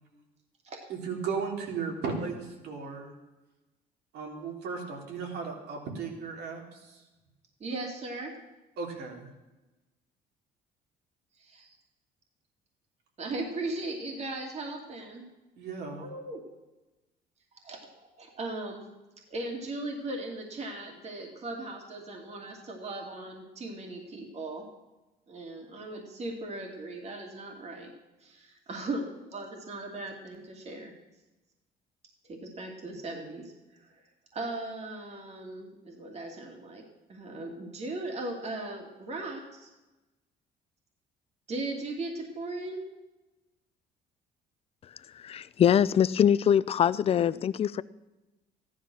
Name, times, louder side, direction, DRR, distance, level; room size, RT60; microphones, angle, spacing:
voice 1, 0.9-3.1 4.1-7.0 8.8-9.3 11.5-11.7 15.6-16.1, right 5 dB, 75° right, 3.4 m, -36 dB
voice 2, 7.6-8.3 11.4-11.6 13.2-15.2 16.0-16.4 17.6-17.9 18.2-18.9 19.3-24.7 25.3-27.9 28.2-30.9 32.2-33.4 34.3-36.8 37.1-39.7 41.5-42.9, right 2 dB, 40° right, 2.6 m, -38 dB
voice 3, 45.2-47.8, left 9 dB, 35° left, 0.4 m, -23 dB
14.5 x 11.0 x 6.3 m
cardioid pair, 110°, 17 cm